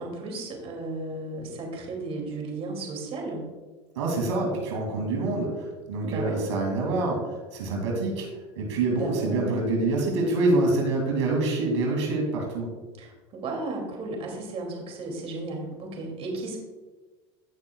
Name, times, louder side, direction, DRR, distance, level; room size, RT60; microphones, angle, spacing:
voice 1, 0.0-3.4 6.0-6.4 8.9-9.6 13.0-16.6, right 2 dB, 40° right, 1 dB, 2.6 m, -34 dB
voice 2, 4.0-8.3 8.6-12.7, right 2 dB, 85° right, 0 dB, 2.4 m, -26 dB
17.0 x 6.1 x 2.3 m, 1.3 s
supercardioid pair, 110°, 15 cm